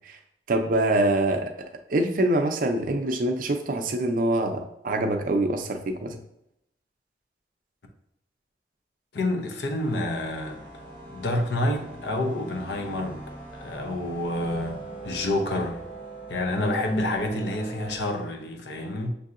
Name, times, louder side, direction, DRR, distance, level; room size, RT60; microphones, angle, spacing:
voice 1, 0.5-1.5 1.9-6.2, right 1 dB, 50° right, 0.4 m, -24 dB
voice 2, 9.1-10.6 11.1-13.2 13.5-15.8 16.3-19.1, left 1 dB, 70° left, 0.7 m, -28 dB
sound 1, 9.8-18.0, right 2 dB, 45° left, 1.1 m, -41 dB
6.5 x 2.7 x 2.5 m
head